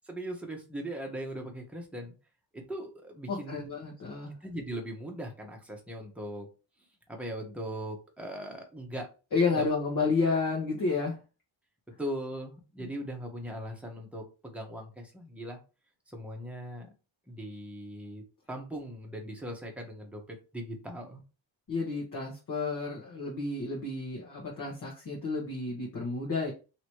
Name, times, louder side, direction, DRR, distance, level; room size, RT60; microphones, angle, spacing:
voice 1, 0.1-2.1 2.5-3.7 4.4-6.5 7.1-9.1 9.5-9.7 12.0-15.6 16.1-16.9 17.3-18.2 18.5-21.2, right 1 dB, 5° right, 0 dB, 1.0 m, -39 dB
voice 2, 3.3-4.4 9.3-11.2 21.7-26.5, left 4 dB, 45° left, -4 dB, 1.1 m, -31 dB
2.9 x 2.9 x 4.5 m, 0.32 s
wide cardioid pair, 135°, 47 cm